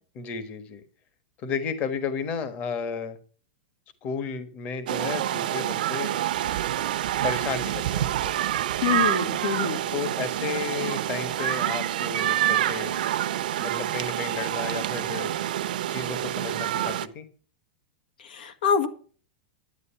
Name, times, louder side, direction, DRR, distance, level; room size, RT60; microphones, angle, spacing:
voice 1, 0.1-0.8 1.4-3.2 4.0-6.1 7.2-8.5 9.9-12.9 13.6-15.3 15.9-17.3, left 6 dB, 30° left, 11 dB, 1.3 m, -33 dB
sound 1, 4.9-17.1, right 12 dB, 70° right, 0.8 m, -27 dB
voice 2, 8.8-9.8 18.3-18.9, left 6 dB, 85° left, 9 dB, 1.8 m, -25 dB
11.0 x 9.5 x 5.7 m, 0.41 s
supercardioid pair, 150°, 5 cm